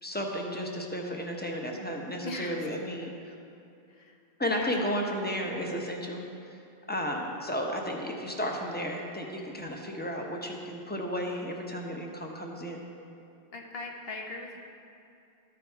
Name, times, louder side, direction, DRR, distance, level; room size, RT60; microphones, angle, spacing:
voice 1, 0.0-3.3 4.4-6.2 6.9-12.8, equal, 10° left, 0 dB, 0.8 m, -33 dB
voice 2, 2.2-2.6 4.0-4.2 4.5-4.7 13.5-14.6, left 2 dB, 70° left, 1 dB, 1.2 m, -39 dB
13.0 x 5.0 x 4.5 m, 2.6 s
omnidirectional pair, 1.0 m